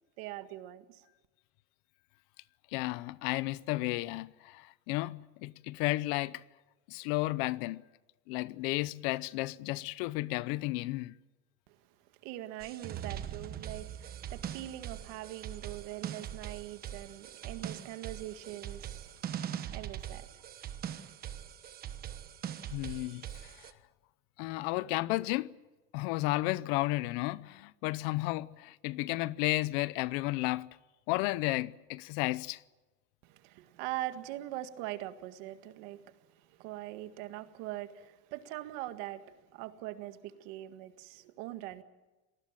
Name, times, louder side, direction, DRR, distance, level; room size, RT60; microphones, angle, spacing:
voice 1, 0.2-1.1 11.7-11.8 12.2-19.3 19.7-20.4 33.2-41.8, right 15 dB, 60° right, 1.8 m, -42 dB
voice 2, 2.7-6.4 6.9-7.8 8.3-11.1 22.7-23.7 24.4-25.6 25.9-30.7 31.1-32.6, left 20 dB, 55° left, 0.7 m, -33 dB
sound 1, 12.6-23.7, right 10 dB, 25° right, 1.2 m, -42 dB
27.0 x 19.5 x 7.4 m
cardioid pair, 180°, 36 cm